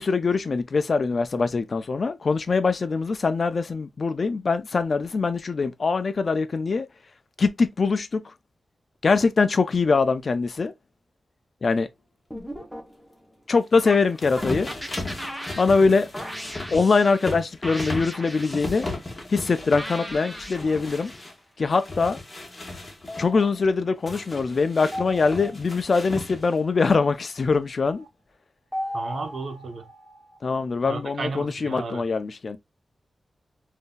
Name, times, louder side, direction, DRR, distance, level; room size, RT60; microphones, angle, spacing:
voice 1, 0.0-6.9 7.4-8.3 9.0-10.7 11.6-11.9 13.5-14.7 15.6-16.1 16.7-18.9 19.3-21.1 21.6-22.2 23.2-28.1 30.4-32.6, left 4 dB, 55° left, 0.4 m, -23 dB
sound 1, 12.3-13.3 13.8-17.3 17.6-18.9 19.8-21.3 23.1-24.0 24.9-25.9 26.9-27.2 27.9-28.1 28.7-30.5, equal, 5° left, 0.8 m, -37 dB
sound 2, 14.2-21.3 21.7-23.3 24.1-26.7, left 2 dB, 25° left, 1.2 m, -36 dB
voice 2, 28.9-29.8 30.9-32.0, right 3 dB, 70° right, 0.7 m, -33 dB
3.6 x 2.6 x 2.2 m
wide cardioid pair, 100°, 0 cm